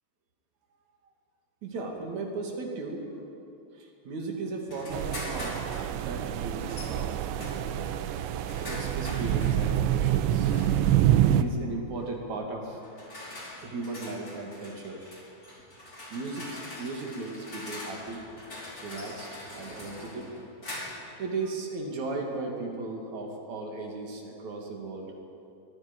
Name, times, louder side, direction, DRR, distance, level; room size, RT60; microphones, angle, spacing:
voice 1, 1.6-3.0 3.8-5.6 5.9-8.0 8.6-10.5 11.3-12.8 13.6-15.1 16.1-18.2 18.8-19.3 19.5-20.3 21.2-25.1, right 3 dB, 45° right, 1 dB, 3.2 m, -36 dB
sound 1, 4.7-5.9 6.7-6.9 7.4-9.6 10.4-10.9 12.0-12.2 12.8-21.1, left 1 dB, 20° left, 5.0 m, -43 dB
sound 2, 4.9-11.4, right 11 dB, 80° right, 2.9 m, -26 dB
23.0 x 22.0 x 5.5 m, 2.6 s
omnidirectional pair, 5.4 m